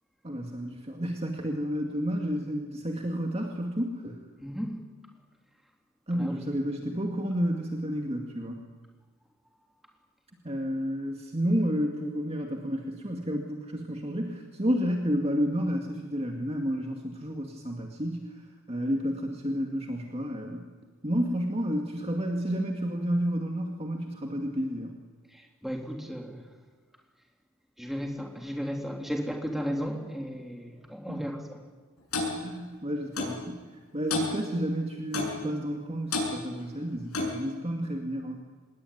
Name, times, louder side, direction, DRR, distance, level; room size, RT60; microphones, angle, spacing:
voice 1, 0.2-4.2 6.1-8.6 10.4-18.2 18.7-20.7 21.0-25.0 31.1-31.3 32.4-33.6 33.9-38.4, equal, 30° right, 2 dB, 2.2 m, -31 dB
voice 2, 4.4-4.8 6.1-6.3 25.3-26.4 27.8-31.6, equal, ahead, 1 dB, 3.6 m, -34 dB
Clock, 32.1-32.3 33.2-33.4 34.1-34.3 35.1-35.4 36.1-36.3 37.1-37.4, left 3 dB, 85° left, 7.8 m, -29 dB
26.0 x 20.5 x 9.6 m, 1.4 s
head